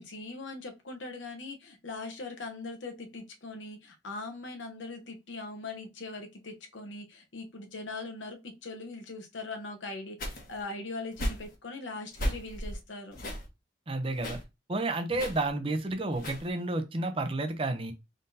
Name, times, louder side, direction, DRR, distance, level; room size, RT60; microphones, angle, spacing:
voice 1, 0.0-13.2, left 3 dB, 80° left, 0.9 m, -41 dB
sound 1, 10.2-10.6 11.1-11.5 12.1-12.8 13.1-13.5 14.1-14.4 15.1-15.5 16.1-16.5, equal, 50° left, 1.4 m, -35 dB
voice 2, 13.9-14.4 14.7-17.9, right 2 dB, 30° right, 0.6 m, -31 dB
3.9 x 3.7 x 2.7 m
head